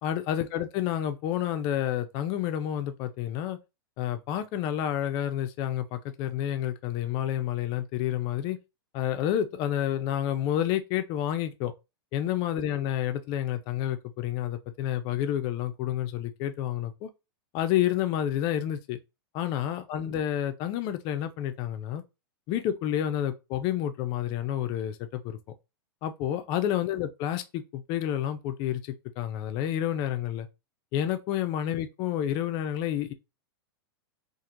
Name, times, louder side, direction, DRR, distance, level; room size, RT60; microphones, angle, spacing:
voice 1, 0.0-3.6 4.0-8.6 8.9-11.7 12.1-17.1 17.5-19.0 19.3-22.0 22.5-25.4 26.0-30.5 30.9-33.1, left 11 dB, 35° left, 0.5 m, -29 dB
4.4 x 2.5 x 2.5 m
supercardioid pair, 150°, 13 cm